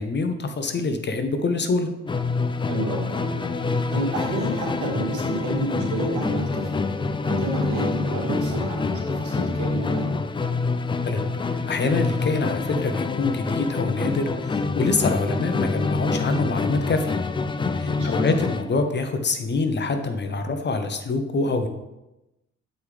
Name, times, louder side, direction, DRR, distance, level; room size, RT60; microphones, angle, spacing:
voice 1, 0.0-1.9 11.1-17.2 17.7-21.7, left 3 dB, 35° left, 7 dB, 0.8 m, -25 dB
Musical instrument, 2.1-18.7, left 4 dB, 15° left, 0.3 m, -26 dB
voice 2, 2.7-6.8 7.2-10.1 17.8-18.1, right 2 dB, 80° right, 0 dB, 1.9 m, -30 dB
7.9 x 4.9 x 3.4 m, 0.96 s
cardioid pair, 90°, 30 cm